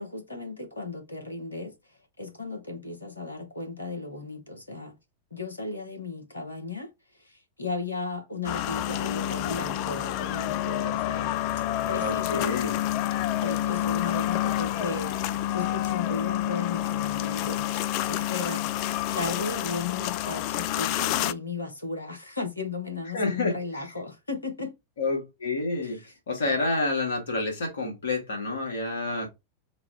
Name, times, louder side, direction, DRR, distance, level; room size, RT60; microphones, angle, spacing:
voice 1, 0.0-4.9 5.3-6.9 7.2-12.5 13.4-18.7 19.1-24.7 25.8-26.1 26.4-26.5, left 3 dB, 80° left, 1.2 m, -35 dB
sound 1, 8.5-21.3, left 13 dB, 45° left, 0.3 m, -28 dB
voice 2, 12.0-12.8 23.1-23.6 25.0-29.3, left 3 dB, 65° left, 1.9 m, -29 dB
4.0 x 2.3 x 3.5 m
figure-of-eight pair, 90°, 0 cm